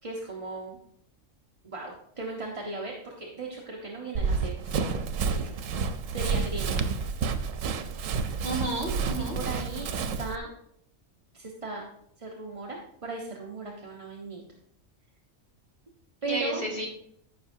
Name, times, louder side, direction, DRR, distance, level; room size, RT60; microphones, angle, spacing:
voice 1, 0.0-0.8 1.6-4.9 5.3-5.5 6.1-6.9 9.3-10.5 11.3-11.8 12.2-14.4 16.2-16.7, right 3 dB, 30° right, -1 dB, 1.0 m, -37 dB
Run, 4.1-10.4, right 5 dB, 85° right, 1.1 m, -30 dB
voice 2, 8.4-9.4 16.3-16.9, right 1 dB, 45° left, -2 dB, 2.5 m, -31 dB
14.0 x 6.0 x 2.7 m, 0.71 s
omnidirectional pair, 1.3 m